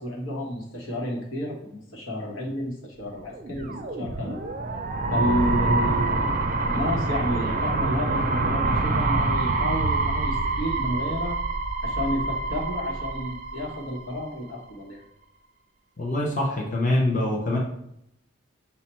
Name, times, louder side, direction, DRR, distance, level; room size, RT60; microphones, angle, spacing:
voice 1, 0.0-4.4 5.1-11.4 11.8-15.0, equal, 80° left, -1 dB, 1.1 m, -31 dB
sound 1, 3.3-14.2, right 2 dB, 40° right, 0.5 m, -26 dB
voice 2, 16.0-17.6, left 1 dB, 35° left, -2 dB, 0.7 m, -24 dB
5.6 x 2.1 x 4.2 m, 0.78 s
head